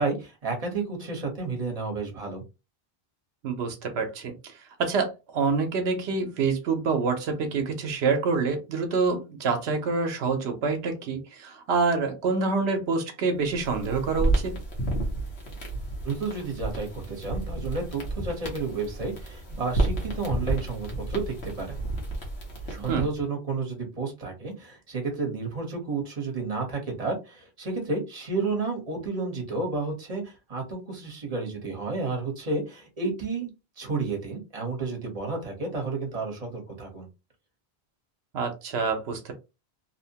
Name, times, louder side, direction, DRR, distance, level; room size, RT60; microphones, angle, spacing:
voice 1, 0.0-2.4 16.0-21.8 22.7-33.5 33.8-37.1, right 3 dB, 35° right, 1.0 m, -31 dB
voice 2, 3.4-4.5 4.8-14.6 22.9-23.0 38.3-39.3, right 4 dB, 90° right, 0.9 m, -27 dB
sound 1, 13.4-23.2, right 2 dB, 80° left, 1.1 m, -31 dB
2.8 x 2.1 x 2.7 m
omnidirectional pair, 1.1 m